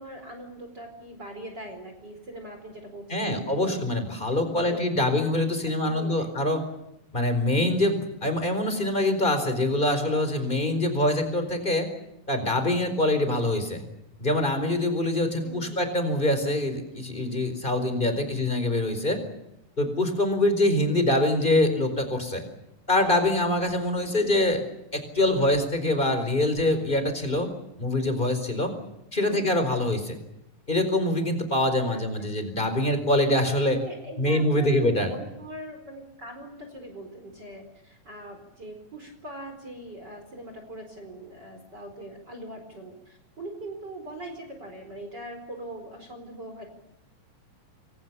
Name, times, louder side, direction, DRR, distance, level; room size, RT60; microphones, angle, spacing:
voice 1, 0.0-3.8 4.3-4.8 5.2-5.3 5.8-6.3 15.4-15.9 18.1-18.4 24.2-24.5 29.2-29.6 31.9-32.0 33.7-46.6, right 1 dB, 30° right, 4 dB, 4.9 m, -41 dB
voice 2, 3.1-6.6 7.1-11.9 12.3-13.8 14.2-19.2 19.8-22.4 22.9-24.6 24.9-27.5 27.8-28.7 29.1-30.1 30.7-33.8 34.2-35.1, left 1 dB, 15° left, 8 dB, 4.4 m, -24 dB
29.0 x 23.5 x 7.0 m, 0.86 s
omnidirectional pair, 4.1 m